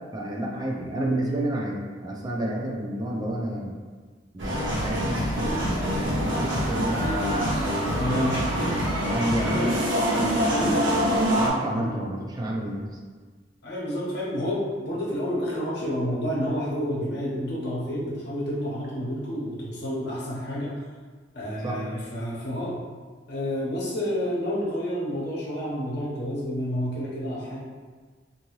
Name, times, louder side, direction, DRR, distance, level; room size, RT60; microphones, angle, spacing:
voice 1, 0.1-3.7 4.3-7.7 8.0-8.3 9.1-9.8 10.1-11.0 11.4-13.0 21.6-21.8, right 1 dB, 20° right, -2 dB, 0.4 m, -30 dB
sound 1, 4.4-11.5, equal, 85° right, 0.8 m, -25 dB
sound 2, 5.3-6.7 6.9-12.2, right 1 dB, 30° left, 0.7 m, -37 dB
voice 2, 8.0-8.5 9.4-9.7 10.5-10.9 11.7-11.9 13.6-20.8 21.3-22.8 23.3-27.6, equal, 65° left, -5 dB, 0.9 m, -29 dB
2.7 x 2.7 x 3.0 m, 1.4 s
head